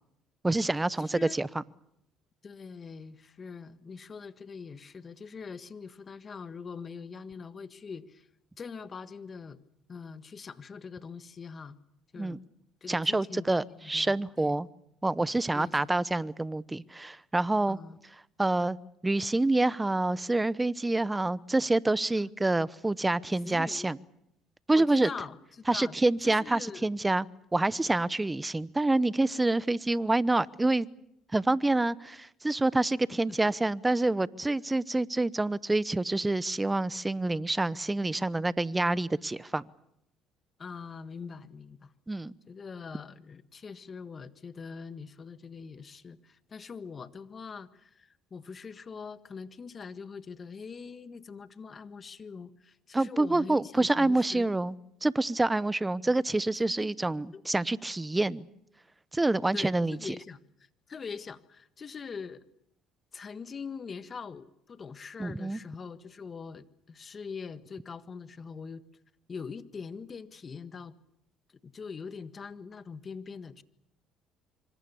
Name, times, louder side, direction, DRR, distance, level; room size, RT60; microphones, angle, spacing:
voice 1, 0.4-1.6 12.2-12.4 12.9-14.7 15.0-17.8 18.4-18.8 19.0-24.0 24.7-25.1 25.7-27.3 27.5-30.9 31.3-39.6 42.1-42.3 52.9-54.8 55.0-58.4 59.1-60.1 65.2-65.6, right 2 dB, 15° right, 19 dB, 0.9 m, -27 dB
voice 2, 1.0-1.4 2.4-8.3 8.6-9.6 9.9-11.8 12.1-12.4 12.8-14.6 15.5-15.9 17.7-18.0 22.2-22.3 23.4-23.9 24.7-25.9 26.2-26.9 33.3-33.4 40.6-41.9 42.5-54.5 56.8-56.9 57.3-57.4 59.5-60.4 60.9-62.4 63.1-68.8 69.3-70.9 71.6-73.6, left 5 dB, 40° left, 12 dB, 1.6 m, -43 dB
26.0 x 24.5 x 7.1 m, 0.79 s
supercardioid pair, 70°, 0 cm